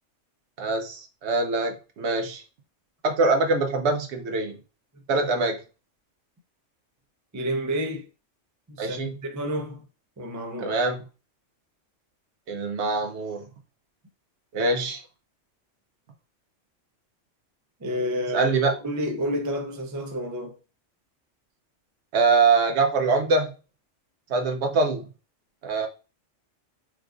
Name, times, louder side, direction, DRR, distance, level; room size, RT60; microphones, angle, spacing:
voice 1, 0.6-2.4 3.0-4.6 5.1-5.6 8.8-9.1 10.6-11.0 12.5-13.4 14.5-15.0 17.9-18.0 18.3-18.7 22.1-23.5 24.3-25.0 25.6-25.9, right 3 dB, 65° right, 0.9 m, -23 dB
voice 2, 7.3-8.0 8.7-9.8 10.2-10.8 17.8-18.5 18.8-20.6, equal, 30° right, 0.3 m, -29 dB
4.6 x 2.4 x 2.4 m
omnidirectional pair, 1.3 m